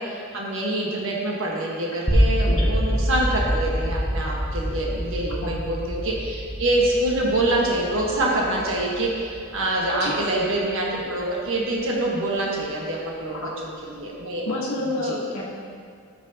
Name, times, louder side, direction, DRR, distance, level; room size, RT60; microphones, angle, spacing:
voice 1, 0.0-14.5 15.0-15.2, right 1 dB, 70° right, -3 dB, 1.4 m, -25 dB
sound 1, 2.1-12.1, equal, 5° right, 1.0 m, -26 dB
voice 2, 14.5-15.4, left 2 dB, 85° left, -5 dB, 1.3 m, -28 dB
13.0 x 6.2 x 2.9 m, 2.3 s
head